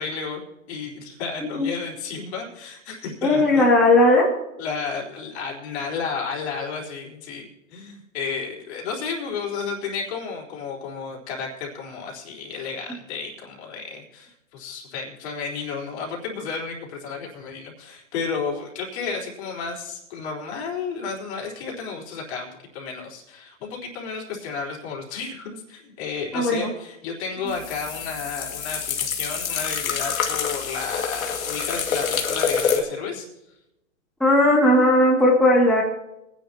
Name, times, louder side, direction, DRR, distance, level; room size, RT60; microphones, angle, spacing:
voice 1, 0.0-3.7 4.6-33.3, left 5 dB, 50° left, -2 dB, 4.0 m, -32 dB
voice 2, 3.2-4.3 26.3-26.7 34.2-35.8, left 1 dB, ahead, -6 dB, 2.3 m, -17 dB
sound 1, 27.5-32.8, left 6 dB, 80° left, 2.3 m, -27 dB
22.0 x 10.5 x 2.9 m, 0.88 s
hypercardioid pair, 135°, 41 cm